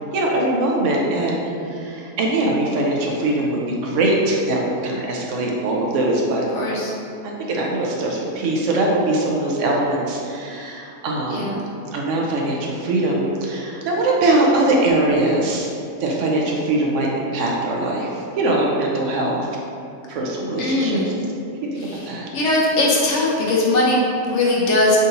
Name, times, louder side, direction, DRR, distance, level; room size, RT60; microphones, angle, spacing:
voice 1, 0.1-6.4 7.2-11.5 11.9-15.7 16.0-18.1 18.4-19.5 20.1-21.0 21.7-21.8 22.1-22.3, right 2 dB, 65° right, -2 dB, 0.9 m, -21 dB
voice 2, 6.5-6.9 11.3-11.6 20.6-21.1 21.8-25.0, left 2 dB, 60° left, -4 dB, 1.0 m, -20 dB
3.7 x 2.8 x 3.9 m, 2.5 s
omnidirectional pair, 1.5 m